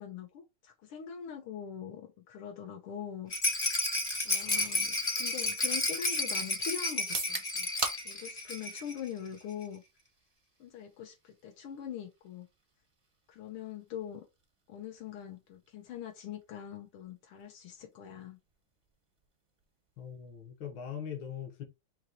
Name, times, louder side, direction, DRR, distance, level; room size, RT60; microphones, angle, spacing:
voice 1, 0.0-3.3 4.2-7.7 8.0-9.8 10.6-12.5 13.3-14.3 14.7-18.4, left 8 dB, 80° left, 1.6 m, -43 dB
Rattle, 3.3-9.0 9.3-9.4 9.6-9.7, left 2 dB, 35° left, 0.7 m, -32 dB
sound 1, 7.0-20.8, right 2 dB, 45° right, 0.4 m, -46 dB
voice 2, 20.0-21.6, left 8 dB, 65° left, 1.7 m, -41 dB
4.4 x 2.9 x 3.9 m
omnidirectional pair, 2.4 m